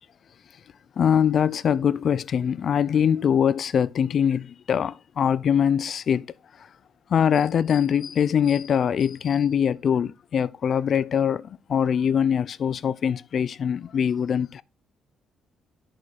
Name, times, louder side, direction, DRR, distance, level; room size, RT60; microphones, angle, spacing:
voice 1, 1.0-6.3 7.1-14.6, left 8 dB, 45° left, 0.5 m, -23 dB
11.5 x 6.4 x 3.9 m
cardioid pair, 155°, 0 cm